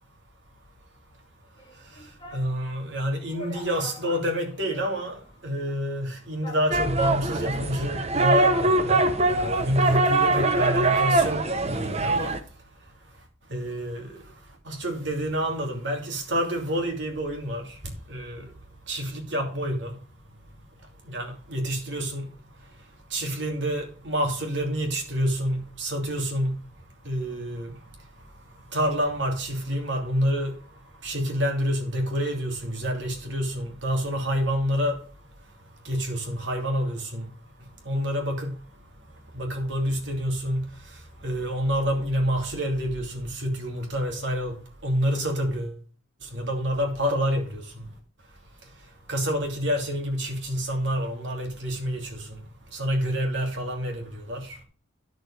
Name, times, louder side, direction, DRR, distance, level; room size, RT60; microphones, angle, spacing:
sound 1, 1.6-2.5 3.0-3.1 3.3-5.4 5.7-5.8 6.4-7.1 7.9-11.1 11.3-11.4, left 2 dB, 25° left, 2.2 m, -44 dB
voice 1, 2.3-5.2 5.4-12.3 13.5-14.1 14.7-17.6 18.1-18.4 18.9-19.9 21.1-22.3 23.1-26.6 27.0-27.7 28.7-30.5 31.0-35.0 35.8-37.3 37.8-38.5 39.3-40.6 41.2-44.5 44.8-45.7 46.3-47.6 49.1-52.2 52.7-54.6, equal, 65° right, 2.9 m, -28 dB
sound 2, 6.7-12.4, right 2 dB, 30° right, 0.9 m, -23 dB
10.5 x 6.8 x 4.9 m
head